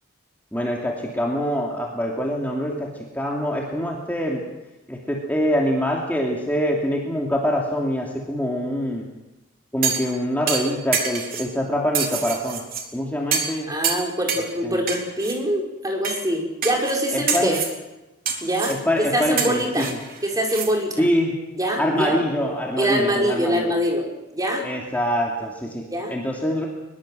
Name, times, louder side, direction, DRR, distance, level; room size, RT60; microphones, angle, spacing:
voice 1, 0.5-2.9 3.1-4.5 4.9-9.1 9.7-12.6 12.9-13.7 14.6-14.8 17.1-17.6 18.7-20.0 21.0-21.3 21.8-23.7 24.6-26.7, equal, 10° left, -1 dB, 2.8 m, -24 dB
sound 1, 9.8-10.1 10.5-11.5 11.9-12.8 13.3-13.6 13.8-14.5 14.9-15.4 16.0-16.2 16.6-17.0 17.3-17.7 18.2-18.8 19.4-20.7 21.0-21.1, right 6 dB, 45° right, 3.8 m, -26 dB
voice 2, 13.7-17.6 18.4-19.9 20.2-20.9 21.5-22.2 22.8-24.0 24.3-24.6 25.9-26.2, equal, 20° right, 1 dB, 5.2 m, -24 dB
23.0 x 22.0 x 7.8 m, 1.0 s
head